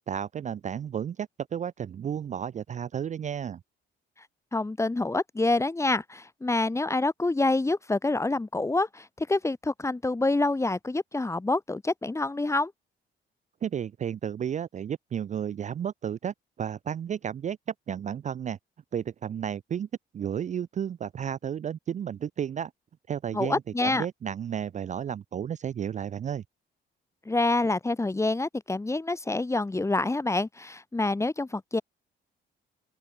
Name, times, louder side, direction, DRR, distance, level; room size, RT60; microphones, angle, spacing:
voice 1, 0.1-3.6 13.6-17.6 17.9-18.6 18.9-19.9 20.1-22.7 23.1-26.4, right 8 dB, 35° right, 0.4 m, -32 dB
voice 2, 4.5-12.7 23.3-24.1 27.3-31.8, left 2 dB, 15° left, 1.1 m, -27 dB
open air
cardioid pair, 90°, 20 cm